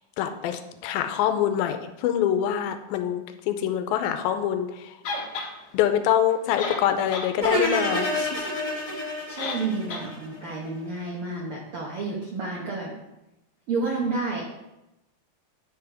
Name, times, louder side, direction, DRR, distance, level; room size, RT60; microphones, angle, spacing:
voice 1, 0.2-4.7 5.7-8.5, left 10 dB, 90° left, 8 dB, 2.4 m, -25 dB
sound 1, 5.0-5.5 6.3-6.4 6.6-7.3 7.7-7.8 9.4-9.6 9.9-10.0, left 3 dB, 60° left, 1.9 m, -31 dB
sound 2, 7.4-10.6, equal, 20° left, 1.0 m, -28 dB
voice 2, 9.3-12.9 13.7-14.4, right 3 dB, 90° right, -2 dB, 1.2 m, -30 dB
9.7 x 4.8 x 4.9 m, 0.94 s
omnidirectional pair, 4.2 m